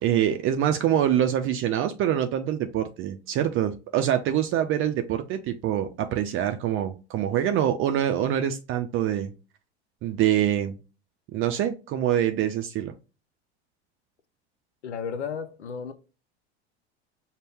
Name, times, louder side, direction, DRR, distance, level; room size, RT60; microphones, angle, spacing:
voice 1, 0.0-9.3 10.0-10.7 11.3-12.9, right 10 dB, 40° right, 0.5 m, -25 dB
voice 2, 14.8-15.9, left 6 dB, 85° left, 0.6 m, -33 dB
5.2 x 2.2 x 3.3 m
hypercardioid pair, 80°, 34 cm